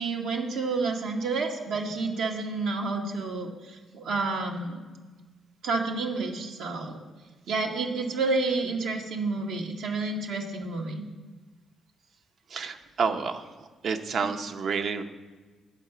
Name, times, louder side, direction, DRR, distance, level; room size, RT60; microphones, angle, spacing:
voice 1, 0.0-4.8 5.6-7.0 7.5-11.0 14.2-14.3, right 3 dB, 80° right, 1 dB, 1.4 m, -30 dB
voice 2, 12.5-13.5 13.8-15.0, right 5 dB, 60° right, 7 dB, 0.8 m, -29 dB
10.5 x 4.9 x 6.7 m, 1.3 s
cardioid pair, 90°, 0 cm